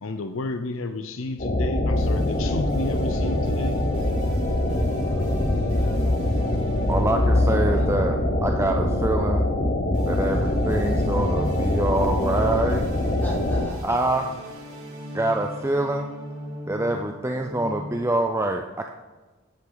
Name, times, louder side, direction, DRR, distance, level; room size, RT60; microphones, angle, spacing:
voice 1, 0.0-3.8 13.9-14.4, left 2 dB, 65° left, 9 dB, 0.6 m, -32 dB
sound 1, 1.4-13.7, left 1 dB, 40° left, 1.0 m, -23 dB
sound 2, 1.9-17.9, equal, 60° right, 3.8 m, -41 dB
voice 2, 5.0-6.0 7.6-7.8 13.2-13.8, equal, 10° left, -6 dB, 3.6 m, -41 dB
voice 3, 6.9-9.4 10.1-12.8 13.8-14.3 15.1-16.1 16.7-18.9, right 2 dB, 15° right, 4 dB, 0.5 m, -25 dB
10.5 x 8.9 x 4.0 m, 1.2 s
head